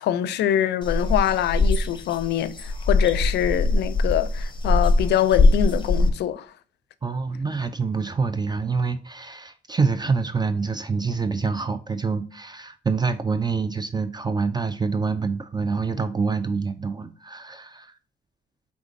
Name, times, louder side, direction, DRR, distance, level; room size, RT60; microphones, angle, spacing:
voice 1, 0.0-6.5, left 11 dB, 80° left, 0.4 m, -24 dB
sound 1, 0.8-6.1, left 2 dB, 30° left, 0.8 m, -21 dB
voice 2, 7.0-17.9, right 4 dB, 25° right, 0.4 m, -26 dB
4.9 x 3.5 x 2.5 m
cardioid pair, 70°, 17 cm